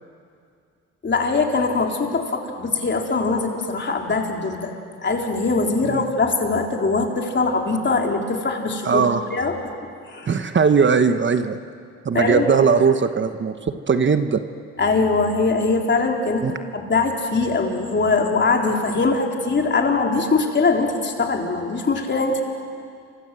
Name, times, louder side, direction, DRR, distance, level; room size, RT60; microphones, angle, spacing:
voice 1, 1.0-4.7 5.0-9.0 9.3-9.5 10.1-10.3 12.1-12.5 14.8-16.5 16.7-22.4, left 3 dB, 35° left, 1 dB, 4.1 m, -22 dB
voice 2, 8.8-9.2 10.3-11.6 12.0-14.4 16.4-16.5, right 5 dB, 40° right, 9 dB, 1.2 m, -19 dB
29.5 x 25.0 x 7.8 m, 2.3 s
cardioid pair, 90°, 30 cm